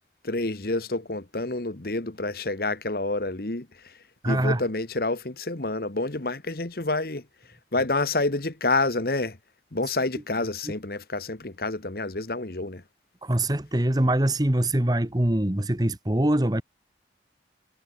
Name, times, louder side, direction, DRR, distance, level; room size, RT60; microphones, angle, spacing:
voice 1, 0.2-3.9 4.2-7.2 7.7-9.4 9.7-12.8, left 2 dB, 55° left, 1.5 m, -28 dB
voice 2, 4.2-4.6 13.2-16.6, right 1 dB, 20° right, 1.2 m, -23 dB
head